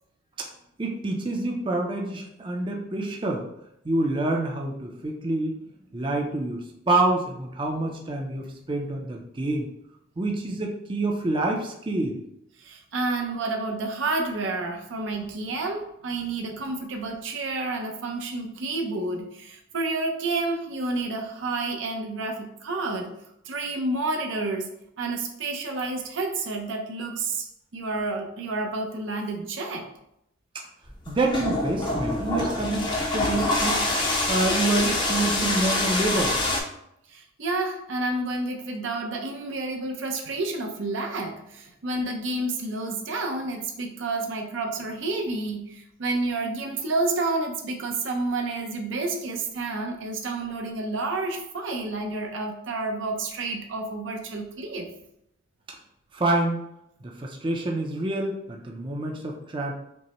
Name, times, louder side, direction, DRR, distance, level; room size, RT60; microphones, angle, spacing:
voice 1, 0.8-3.5 3.8-5.6 5.9-9.7 10.2-12.2 31.1-33.8 34.3-36.5 56.1-56.6 57.0-59.7, right 2 dB, 25° right, 0 dB, 0.5 m, -27 dB
voice 2, 12.6-23.1 23.4-27.5 27.7-29.9 37.1-54.9, right 2 dB, 75° right, 2 dB, 0.6 m, -30 dB
sound 1, 30.9-36.6, left 2 dB, 25° left, 0.5 m, -25 dB
5.2 x 2.1 x 2.9 m, 0.77 s
head